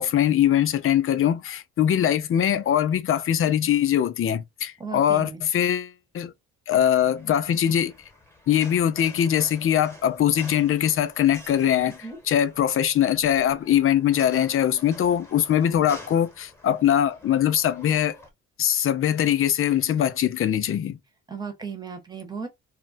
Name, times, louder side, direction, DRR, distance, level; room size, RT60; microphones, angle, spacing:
voice 1, 0.0-6.3 6.7-7.9 8.5-12.0 12.3-18.2 18.6-21.0, left 10 dB, 45° left, 0.5 m, -22 dB
voice 2, 4.8-5.4 11.8-12.2 21.3-22.5, right 5 dB, 15° right, 1.0 m, -36 dB
sound 1, 6.8-18.3, left 1 dB, 10° left, 1.2 m, -48 dB
2.4 x 2.1 x 3.9 m
cardioid pair, 90°, 30 cm